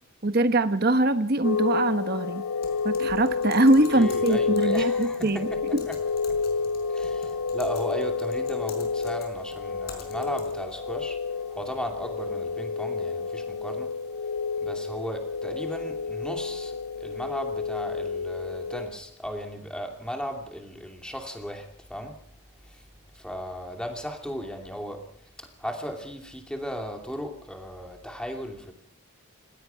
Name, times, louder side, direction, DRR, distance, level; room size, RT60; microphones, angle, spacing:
voice 1, 0.2-2.4 2.8-5.5 5.7-5.8, right 1 dB, 45° right, 10 dB, 1.1 m, -22 dB
sound 1, 1.4-18.9, left 4 dB, 75° left, 3.1 m, -30 dB
Typing, 2.6-10.7, left 4 dB, 45° left, 4.9 m, -48 dB
voice 2, 3.9-5.6 5.8-5.9 6.9-11.2 11.5-13.9 14.6-22.2 23.1-25.0 25.6-28.7, equal, 5° left, 3 dB, 2.6 m, -36 dB
30.0 x 16.5 x 5.7 m, 0.67 s
head